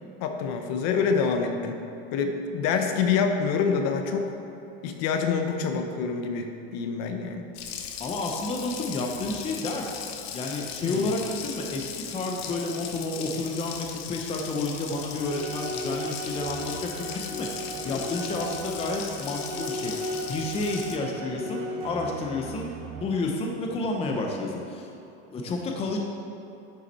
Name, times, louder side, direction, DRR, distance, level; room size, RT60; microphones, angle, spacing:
voice 1, 0.2-1.8 2.1-4.3 4.8-7.4 10.8-11.1, left 5 dB, 55° left, 5 dB, 0.9 m, -26 dB
Water tap faucet, 7.5-21.0, left 8 dB, 90° left, 1.0 m, -38 dB
voice 2, 8.0-10.0 10.3-19.9 20.3-24.9 25.3-26.0, left 2 dB, 20° left, 1 dB, 0.7 m, -30 dB
sound 1, 15.1-23.0, equal, 60° right, 2.0 m, -36 dB
10.5 x 5.6 x 4.3 m, 2.9 s
supercardioid pair, 155°, 30 cm